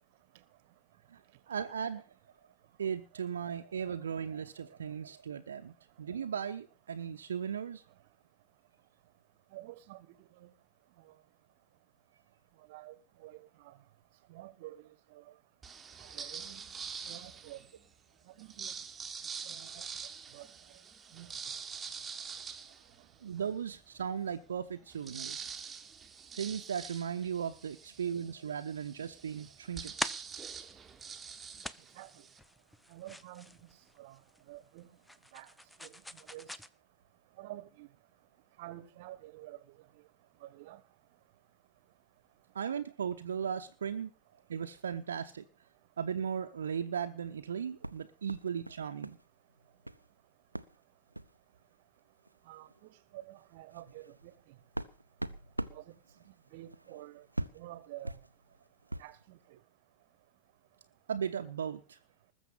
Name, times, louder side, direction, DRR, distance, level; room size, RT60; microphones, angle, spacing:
voice 1, 1.1-2.1 2.8-7.8 23.2-25.5 26.3-30.1 42.5-44.1 44.5-45.4 46.0-49.2 61.1-62.0, right 7 dB, 65° right, 1.0 m, -37 dB
voice 2, 9.5-10.1 10.4-10.5 12.7-12.9 13.2-13.7 14.3-15.2 16.0-16.6 17.1-17.6 18.4-18.7 19.4-19.9 20.3-20.5 21.1-21.4 31.9-32.1 32.9-33.5 34.0-34.2 34.5-34.9 35.3-35.5 35.8-35.9 36.3-36.5 37.4-37.9 38.6-39.6 40.4-40.8 52.5-52.7 53.1-54.3 55.7-55.8 56.5-57.2 57.5-58.1 59.0-59.4, right 16 dB, 50° right, 1.3 m, -49 dB
sound 1, 15.6-17.8 18.4-23.6 24.1-24.2 24.4-32.4, right 6 dB, 15° right, 1.6 m, -45 dB
sound 2, 29.3-36.7, left 1 dB, 5° left, 0.8 m, -45 dB
sound 3, 47.8-49.2 49.5-50.1 50.5-50.8 51.1-51.4 52.3-52.4 52.7-52.9 53.4-59.2, right 1 dB, 85° right, 0.7 m, -42 dB
20.0 x 7.2 x 7.1 m
figure-of-eight pair, 90°, 0 cm